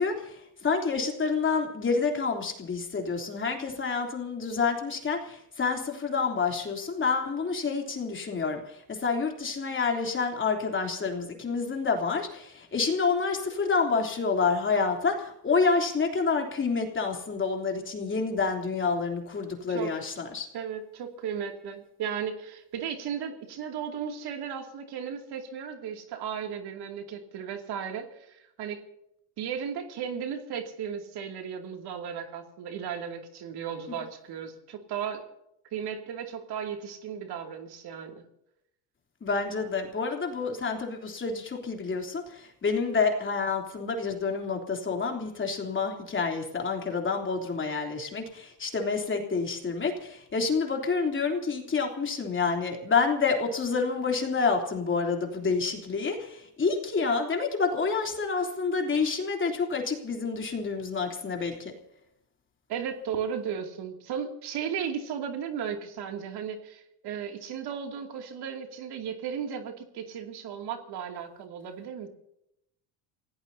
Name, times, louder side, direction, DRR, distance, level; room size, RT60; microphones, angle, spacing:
voice 1, 0.0-20.5 39.2-61.7, left 4 dB, 25° left, 2 dB, 3.4 m, -28 dB
voice 2, 20.5-28.8 29.4-35.2 35.7-38.2 62.7-72.1, right 7 dB, 55° right, 4 dB, 2.7 m, -35 dB
28.5 x 17.0 x 2.8 m, 0.78 s
cardioid pair, 115°, 46 cm